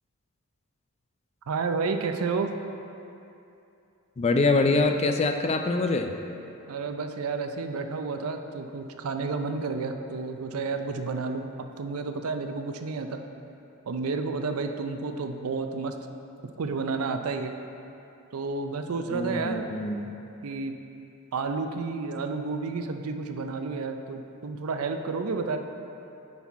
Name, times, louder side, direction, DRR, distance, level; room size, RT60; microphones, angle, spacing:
voice 1, 1.5-2.5 6.7-13.2 13.9-15.9 16.6-17.5 18.3-19.7 20.4-20.7 21.3-25.6, right 4 dB, 75° right, 6 dB, 0.5 m, -31 dB
voice 2, 4.2-6.1 19.1-20.1, left 3 dB, 30° left, 6 dB, 0.4 m, -24 dB
10.0 x 4.2 x 4.1 m, 2.8 s
head